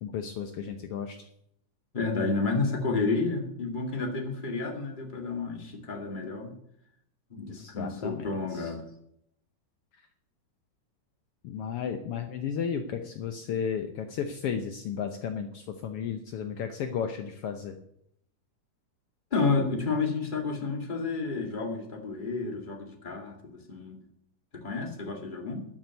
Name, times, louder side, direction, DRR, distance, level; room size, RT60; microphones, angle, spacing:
voice 1, 0.0-1.3 7.5-8.7 11.4-17.8, left 7 dB, 80° left, 6 dB, 1.3 m, -34 dB
voice 2, 1.9-6.5 7.3-8.8 19.3-24.0 24.5-25.7, left 3 dB, 20° left, 2 dB, 1.7 m, -30 dB
13.0 x 6.2 x 9.3 m, 0.73 s
omnidirectional pair, 3.8 m